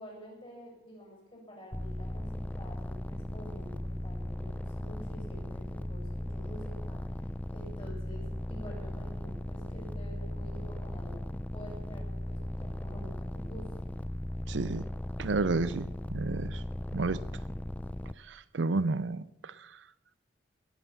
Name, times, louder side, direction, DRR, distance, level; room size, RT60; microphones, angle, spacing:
voice 1, 0.0-7.0 7.5-13.9, equal, 30° left, 7.5 m, -49 dB
sound 1, 1.7-18.1, left 1 dB, 10° left, 0.4 m, -37 dB
voice 2, 14.5-14.9 15.2-16.6 16.9-17.2 18.3-19.7, right 3 dB, 65° right, 0.5 m, -31 dB
20.0 x 9.2 x 7.1 m
head